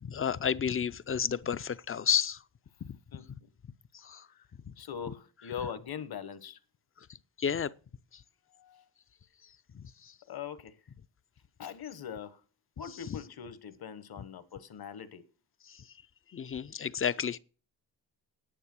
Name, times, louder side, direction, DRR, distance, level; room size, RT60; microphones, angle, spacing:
voice 1, 0.0-2.4 4.0-4.2 7.4-7.7 9.7-9.8 16.3-17.4, left 7 dB, 30° left, 0.5 m, -30 dB
voice 2, 3.1-3.5 4.3-4.5 4.8-6.6 8.5-8.8 10.3-10.7 11.6-12.4 12.8-15.2, left 8 dB, 55° left, 1.3 m, -42 dB
10.0 x 9.1 x 6.1 m
cardioid pair, 105°, 43 cm